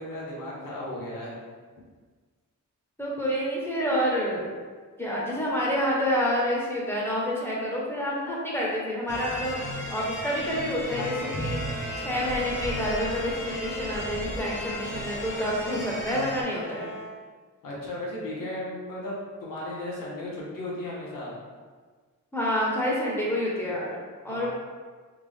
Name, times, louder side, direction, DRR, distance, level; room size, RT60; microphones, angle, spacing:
voice 1, 0.0-1.4 17.6-21.4 24.3-24.5, left 1 dB, 90° left, -5 dB, 1.1 m, -35 dB
voice 2, 3.0-4.5 5.0-16.9 22.3-24.5, equal, 5° left, -5 dB, 0.9 m, -28 dB
sound 1, 9.1-16.4, left 1 dB, 35° left, 0.8 m, -35 dB
sound 2, 11.0-17.2, equal, 60° left, 0.5 m, -40 dB
3.6 x 2.4 x 3.5 m, 1.5 s
cardioid pair, 100°, 32 cm